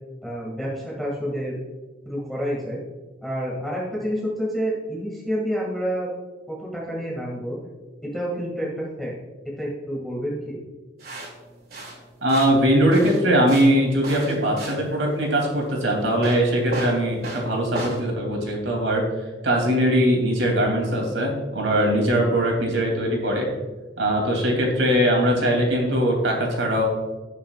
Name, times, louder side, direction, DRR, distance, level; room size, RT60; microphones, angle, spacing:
voice 1, 0.2-1.6 2.1-2.8 3.2-6.1 6.5-7.6 8.0-9.1 9.6-10.6, equal, ahead, -5 dB, 2.1 m, -28 dB
sound 1, 11.0-18.0, right 1 dB, 55° right, 2.7 m, -36 dB
voice 2, 12.2-19.0 19.4-23.5 24.0-26.8, equal, 80° right, 0 dB, 3.0 m, -21 dB
17.5 x 6.5 x 2.4 m, 1.2 s
head